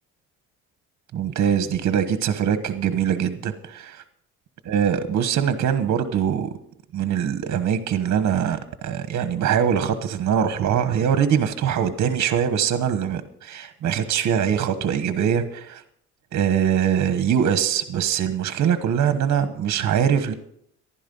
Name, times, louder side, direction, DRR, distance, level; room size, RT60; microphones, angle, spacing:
voice 1, 1.1-4.0 4.7-6.5 6.9-15.8 16.3-20.3, right 8 dB, 65° right, 10 dB, 1.3 m, -22 dB
14.5 x 11.5 x 5.5 m, 0.70 s
cardioid pair, 90°, 30 cm